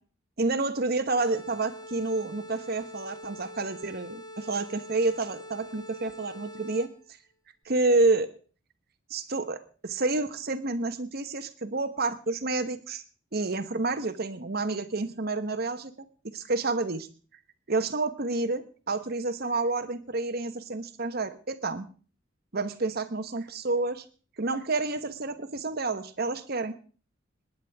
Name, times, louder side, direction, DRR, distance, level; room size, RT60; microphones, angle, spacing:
voice 1, 0.4-6.9 7.6-8.3 9.1-13.0 13.3-15.9 16.3-17.1 17.7-21.9 22.5-24.0 24.4-26.8, right 3 dB, 55° right, 9 dB, 1.2 m, -29 dB
sound 1, 1.2-7.1, left 1 dB, 25° left, 1.5 m, -44 dB
27.0 x 10.5 x 3.6 m, 0.41 s
head